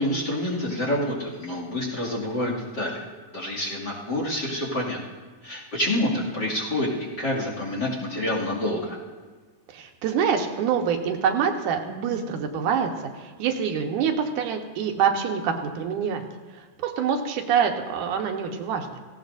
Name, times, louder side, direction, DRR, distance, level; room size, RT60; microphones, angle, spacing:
voice 1, 0.0-3.0 3.3-5.0 5.4-6.9 7.2-9.0, left 1 dB, 35° left, -3 dB, 2.7 m, -27 dB
voice 2, 9.7-12.9 13.1-16.2 16.8-19.0, right 7 dB, 85° right, 3 dB, 2.6 m, -25 dB
17.5 x 16.5 x 2.6 m, 1.5 s
omnidirectional pair, 3.5 m